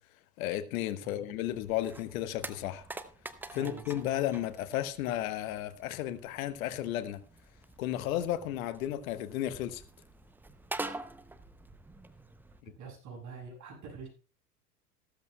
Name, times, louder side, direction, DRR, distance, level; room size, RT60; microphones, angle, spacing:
voice 1, 0.4-2.9 3.5-7.2 7.8-9.8, left 12 dB, 60° left, 1.2 m, -33 dB
sound 1, 1.5-12.6, right 2 dB, 5° right, 0.5 m, -46 dB
voice 2, 3.5-3.9 12.8-14.1, right 5 dB, 40° right, 7.3 m, -45 dB
15.0 x 13.5 x 2.2 m
hypercardioid pair, 100°, 46 cm